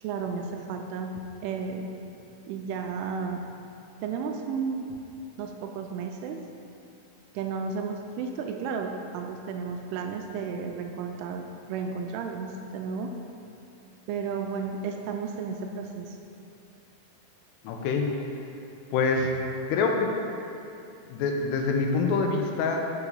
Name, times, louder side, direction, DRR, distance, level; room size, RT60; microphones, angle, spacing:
voice 1, 0.0-1.1 1.4-1.9 2.5-3.4 4.0-4.9 5.4-6.4 7.3-13.1 14.1-16.2, right 5 dB, 85° right, 3 dB, 2.4 m, -33 dB
voice 2, 17.6-18.2 18.9-19.3 19.7-20.2 21.1-22.9, left 4 dB, 80° left, 2 dB, 2.6 m, -25 dB
6.5 x 4.9 x 5.4 m, 2.7 s
omnidirectional pair, 4.9 m